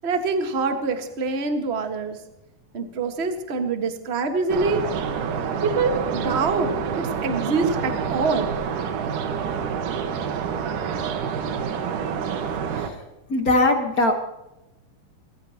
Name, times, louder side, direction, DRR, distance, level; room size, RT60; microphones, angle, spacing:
voice 1, 0.0-2.2 2.7-4.9 5.6-8.5, right 4 dB, 35° right, 5 dB, 1.0 m, -25 dB
sound 1, 4.5-12.9, right 7 dB, 80° right, 2.9 m, -27 dB
voice 2, 13.3-14.1, left 2 dB, 50° left, 4 dB, 1.0 m, -20 dB
29.0 x 15.0 x 2.9 m, 0.94 s
omnidirectional pair, 3.7 m